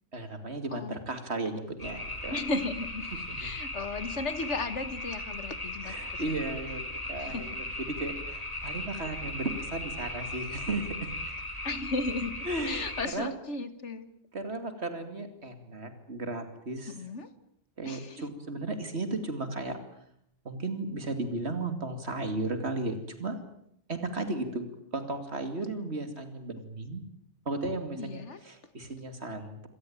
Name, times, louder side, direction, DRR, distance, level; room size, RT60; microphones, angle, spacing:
voice 1, 0.1-2.4 3.3-3.5 5.8-11.1 12.4-12.9 13.1-13.4 14.3-16.9 17.8-19.8 20.4-23.4 23.9-24.7 24.9-27.0 27.4-29.7, right 2 dB, 70° right, 8 dB, 3.0 m, -35 dB
sound 1, 1.8-13.1, left 1 dB, 35° left, 3.8 m, -37 dB
voice 2, 2.3-6.4 7.2-7.6 8.6-8.7 11.6-12.4 12.6-14.1 16.9-17.3 17.9-18.3 28.0-28.4, left 3 dB, 90° left, 13 dB, 2.0 m, -35 dB
25.5 x 18.5 x 8.8 m, 0.73 s
omnidirectional pair, 1.2 m